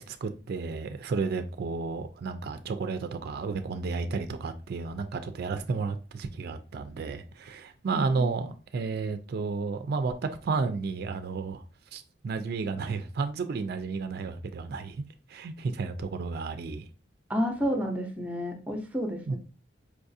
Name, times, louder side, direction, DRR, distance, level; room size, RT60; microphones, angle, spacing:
voice 1, 0.0-10.2 10.4-11.6 11.9-15.0 15.3-16.9 19.3-19.4, right 4 dB, 55° right, 0.3 m, -32 dB
voice 2, 17.3-19.4, equal, 10° right, 0.6 m, -30 dB
4.7 x 2.4 x 2.6 m
head